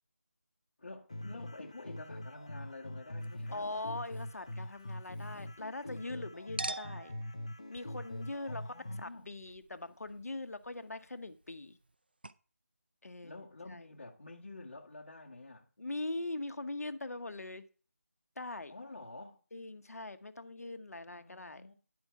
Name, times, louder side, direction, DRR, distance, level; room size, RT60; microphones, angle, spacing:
voice 1, 0.8-3.8 8.4-9.3 13.2-15.7 18.7-19.4 21.1-21.7, left 2 dB, 45° left, 1.7 m, -49 dB
sound 1, 1.1-9.1, left 1 dB, 25° left, 0.5 m, -44 dB
Chink clink, 3.2-6.1 6.6-12.0 12.2-12.3, right 2 dB, 40° right, 0.4 m, -48 dB
voice 2, 3.5-7.2 7.7-8.6 9.0-11.8 13.0-13.9 15.8-17.6 18.4-18.7 19.5-21.6, left 2 dB, 70° left, 1.1 m, -42 dB
10.5 x 4.4 x 5.6 m
figure-of-eight pair, 180°, 8 cm